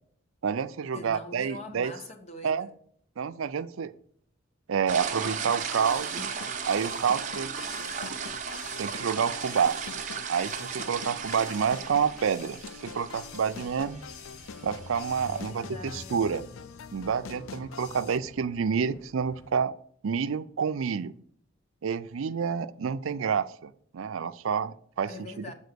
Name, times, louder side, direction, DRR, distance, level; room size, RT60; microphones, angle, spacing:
voice 1, 0.4-1.9 2.4-2.7 3.2-3.9 4.7-6.3 6.7-7.5 8.8-9.8 10.3-14.0 14.6-16.4 16.9-19.7 20.0-21.1 21.8-25.1, right 6 dB, 80° right, 0.4 m, -28 dB
voice 2, 0.9-2.7 15.3-16.5 25.1-25.5, left 2 dB, 30° left, 1.0 m, -44 dB
sound 1, 4.9-15.4, right 6 dB, 35° right, 0.8 m, -36 dB
sound 2, 5.2-18.2, left 6 dB, 85° left, 0.4 m, -44 dB
Bicycle / Mechanisms, 13.5-19.7, left 2 dB, 10° left, 0.3 m, -49 dB
8.2 x 4.2 x 6.7 m
head